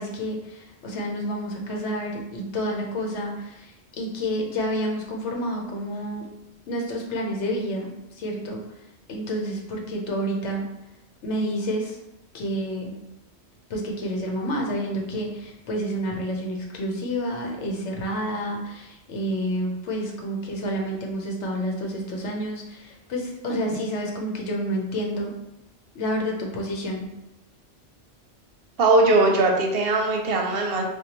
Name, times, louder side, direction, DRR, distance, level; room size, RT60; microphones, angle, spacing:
voice 1, 0.0-6.3 6.7-8.6 9.1-10.7 11.2-12.0 12.3-12.9 13.7-25.4 25.9-27.1, equal, 85° left, 0 dB, 1.1 m, -29 dB
voice 2, 28.8-30.8, right 2 dB, 65° right, 1 dB, 0.8 m, -20 dB
4.4 x 2.3 x 2.9 m, 0.89 s
omnidirectional pair, 1.1 m